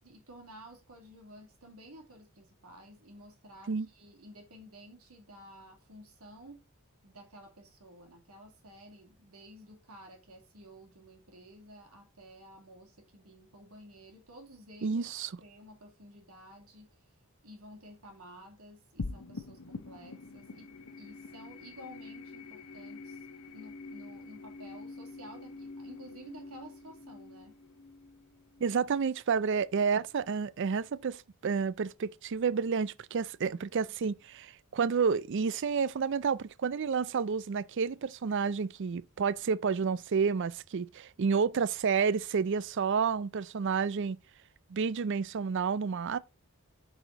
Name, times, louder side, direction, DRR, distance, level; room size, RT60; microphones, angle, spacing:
voice 1, 0.0-6.6 7.0-17.2 17.4-23.3 23.5-27.6, equal, 75° right, 2.7 m, -52 dB
voice 2, 14.8-15.3 28.6-44.2 44.7-46.2, right 5 dB, 55° right, 0.4 m, -30 dB
sound 1, 19.0-29.6, left 3 dB, 80° left, 0.8 m, -46 dB
8.8 x 4.9 x 3.9 m
head